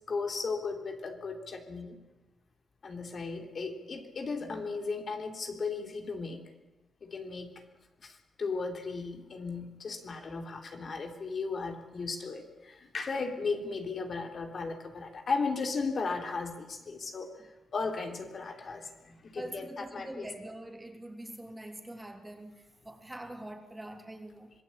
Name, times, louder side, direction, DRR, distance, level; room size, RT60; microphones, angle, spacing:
voice 1, 0.1-2.0 2.8-6.4 7.0-7.5 8.0-20.3, left 4 dB, 50° left, 5 dB, 3.5 m, -36 dB
voice 2, 19.3-24.5, right 1 dB, 15° right, 5 dB, 3.2 m, -44 dB
25.5 x 19.5 x 8.8 m, 1.0 s
cardioid pair, 100°, 0 cm